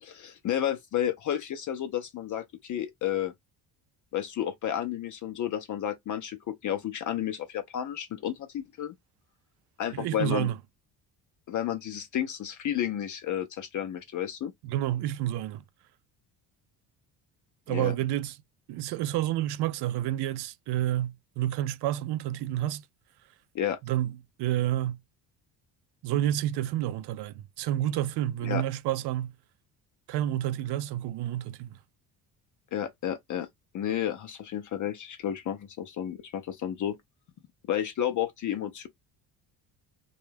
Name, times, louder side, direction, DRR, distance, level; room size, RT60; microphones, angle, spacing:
voice 1, 0.0-3.3 4.1-8.9 9.8-10.5 11.5-14.5 17.7-17.9 23.5-23.8 28.4-28.6 32.7-33.5 33.7-37.0 37.7-38.9, left 10 dB, 45° left, 0.5 m, -31 dB
voice 2, 9.9-10.6 14.6-15.6 17.7-18.4 18.7-22.8 23.8-25.0 26.0-29.3 30.1-31.8, right 13 dB, 70° right, 0.5 m, -29 dB
2.3 x 2.1 x 3.2 m
cardioid pair, 90°, 43 cm